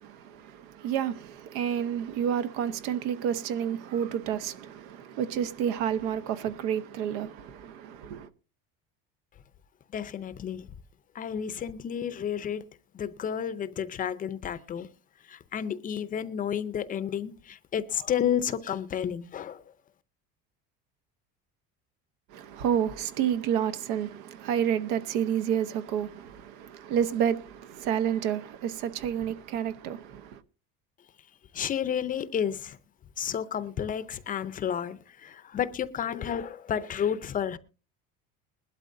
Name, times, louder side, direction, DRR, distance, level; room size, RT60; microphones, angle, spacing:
voice 1, 0.0-8.3 22.3-30.4, right 9 dB, 85° right, 1.0 m, -30 dB
voice 2, 9.9-10.6 11.2-12.6 12.9-14.9 15.3-19.6 31.5-32.8 33.2-37.6, left 8 dB, 25° left, 0.5 m, -31 dB
20.5 x 12.0 x 2.6 m
cardioid pair, 155°, 31 cm